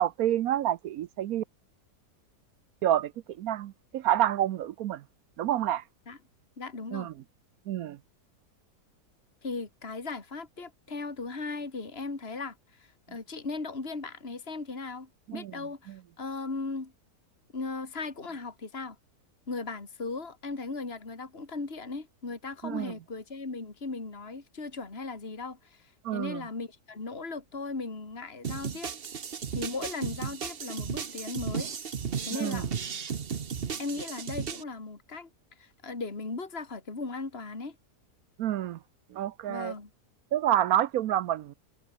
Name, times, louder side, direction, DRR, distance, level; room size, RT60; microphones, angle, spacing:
voice 1, 0.0-1.4 2.8-3.1 3.4-5.0 5.4-5.8 6.9-7.1 7.7-8.0 15.3-15.5 22.6-22.9 26.0-26.4 32.4-32.7 38.4-38.8 39.1-39.7 40.3-41.5, right 12 dB, 70° right, 1.1 m, -28 dB
voice 2, 6.6-7.1 9.4-16.9 17.5-19.0 19.5-28.9 29.5-31.7 32.2-32.7 33.8-35.3 35.6-37.8 39.5-39.9, left 3 dB, 40° left, 3.1 m, -37 dB
sound 1, 28.4-34.6, right 6 dB, 40° right, 1.1 m, -35 dB
omnidirectional pair, 1.7 m